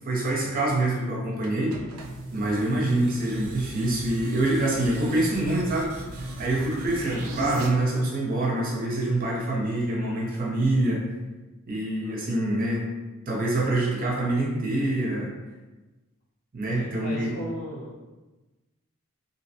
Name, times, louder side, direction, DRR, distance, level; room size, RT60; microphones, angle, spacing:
voice 1, 0.0-1.7 2.3-5.9 6.4-11.0 11.7-12.8 13.3-15.3 16.5-17.3, right 2 dB, 45° right, -3 dB, 0.6 m, -25 dB
sound 1, 1.4-7.7, right 2 dB, 85° right, 0.4 m, -36 dB
voice 2, 12.0-12.3 16.8-18.1, right 1 dB, 75° left, -10 dB, 1.3 m, -37 dB
2.7 x 2.1 x 2.8 m, 1.1 s
head